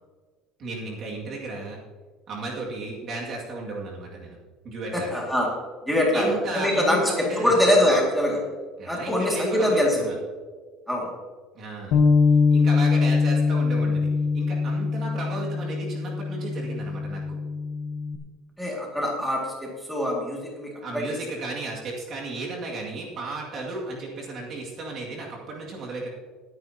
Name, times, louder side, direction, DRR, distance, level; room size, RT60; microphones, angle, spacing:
voice 1, 0.6-1.8 2.3-4.4 4.6-5.2 6.1-7.5 8.8-10.1 11.5-12.0 12.5-14.1 14.3-17.4 20.8-26.1, right 2 dB, 40° right, -2 dB, 2.1 m, -34 dB
voice 2, 4.9-5.5 5.9-8.4 8.9-10.0 10.9-11.1 18.6-21.0, left 1 dB, ahead, -3 dB, 2.1 m, -23 dB
Bass guitar, 11.9-18.2, left 4 dB, 60° left, 1.3 m, -23 dB
19.5 x 9.4 x 2.8 m, 1.5 s
cardioid pair, 160°, 0 cm